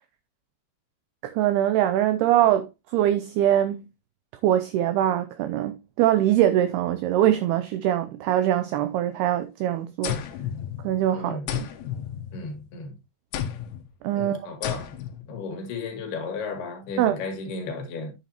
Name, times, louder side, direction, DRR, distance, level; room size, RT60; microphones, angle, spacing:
voice 1, 1.2-3.9 4.4-10.2 10.8-11.7 14.0-14.4 17.0-17.2, right 12 dB, 85° right, 2.3 m, -23 dB
sound 1, 10.0-11.1 11.5-12.8 13.3-13.9 14.6-15.3, left 10 dB, 80° left, 3.3 m, -32 dB
voice 2, 11.1-11.5 12.3-12.9 14.1-14.9 15.3-18.1, left 3 dB, 60° left, 3.8 m, -34 dB
8.9 x 8.4 x 2.9 m
omnidirectional pair, 5.3 m